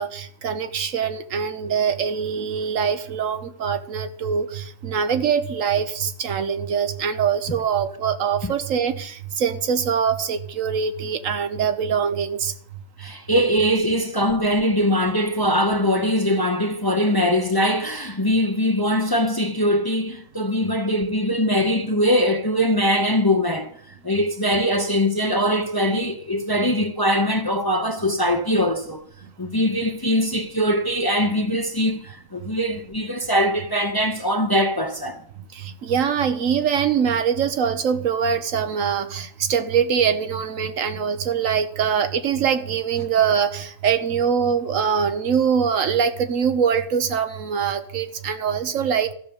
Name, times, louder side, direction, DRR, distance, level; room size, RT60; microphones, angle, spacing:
voice 1, 0.0-12.5 35.5-49.1, right 7 dB, 80° right, 1.3 m, -23 dB
voice 2, 13.0-23.7 24.0-29.0 29.4-35.2, equal, 20° left, 0.7 m, -22 dB
13.5 x 6.5 x 7.1 m
omnidirectional pair, 1.4 m